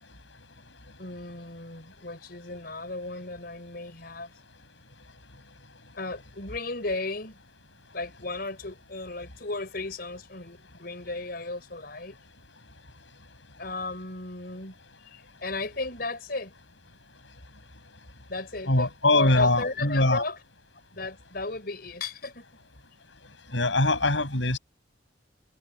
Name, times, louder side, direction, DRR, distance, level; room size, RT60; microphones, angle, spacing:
voice 1, 1.0-4.3 6.0-7.4 7.9-12.1 13.6-14.7 15.0-16.5 18.3-20.4 20.9-22.5, left 2 dB, 55° left, 6.1 m, -35 dB
voice 2, 18.7-20.2 23.5-24.6, left 2 dB, 80° left, 6.9 m, -22 dB
head